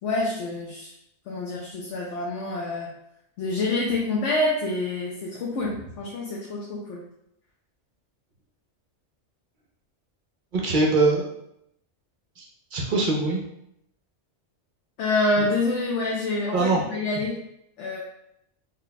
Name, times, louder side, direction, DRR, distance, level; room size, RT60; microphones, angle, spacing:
voice 1, 0.0-0.9 1.3-2.9 3.4-7.0 15.0-17.4 17.8-18.0, left 2 dB, 85° left, -4 dB, 1.0 m, -27 dB
voice 2, 10.5-11.3 12.4-12.5 12.7-13.4 16.5-16.8, right 3 dB, 55° right, -1 dB, 0.7 m, -22 dB
3.3 x 2.2 x 3.9 m, 0.78 s
omnidirectional pair, 1.2 m